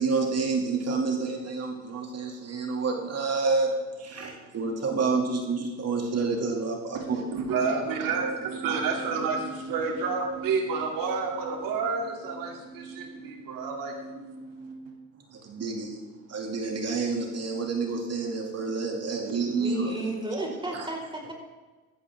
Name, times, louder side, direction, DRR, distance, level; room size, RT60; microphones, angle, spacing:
voice 1, 0.0-3.7 4.0-7.2 15.3-15.9 16.3-19.9, right 4 dB, 45° right, 2 dB, 2.6 m, -28 dB
voice 2, 6.9-15.0, right 4 dB, 75° right, 2 dB, 3.0 m, -30 dB
voice 3, 19.6-21.3, right 2 dB, 15° right, -1 dB, 4.9 m, -33 dB
15.0 x 14.0 x 3.7 m, 1.3 s
supercardioid pair, 75°, 34 cm